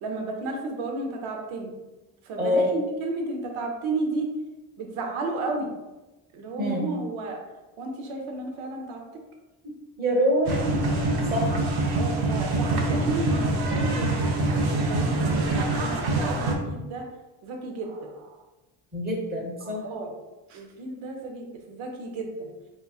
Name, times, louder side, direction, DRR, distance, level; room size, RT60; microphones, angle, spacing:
voice 1, 0.0-1.7 2.2-4.3 4.8-5.7 6.3-7.4 7.8-9.2 11.9-17.0 17.4-18.4 19.6-20.1 20.5-22.5, right 2 dB, 80° right, 2 dB, 0.8 m, -33 dB
voice 2, 10.0-10.8 11.3-11.5 18.9-19.8, equal, 20° right, -2 dB, 1.0 m, -25 dB
sound 1, 10.4-16.5, right 2 dB, 50° right, 0.7 m, -25 dB
3.6 x 3.1 x 2.3 m, 1.1 s
cardioid pair, 110°, 48 cm